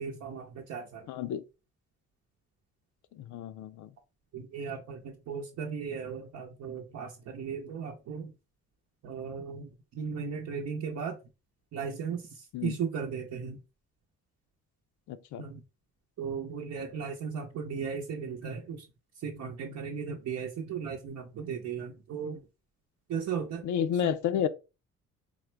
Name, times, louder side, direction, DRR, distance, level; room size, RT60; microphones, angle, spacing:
voice 1, 0.0-1.1 4.3-8.3 9.0-11.2 11.7-13.6 15.4-15.6 16.2-18.9 19.2-22.4 23.1-23.6, right 6 dB, 65° right, 0.8 m, -36 dB
voice 2, 1.1-1.4 3.1-3.9 12.5-12.8 15.1-15.4 23.6-24.5, left 9 dB, 75° left, 0.5 m, -31 dB
3.7 x 2.1 x 4.4 m
cardioid pair, 90°, 30 cm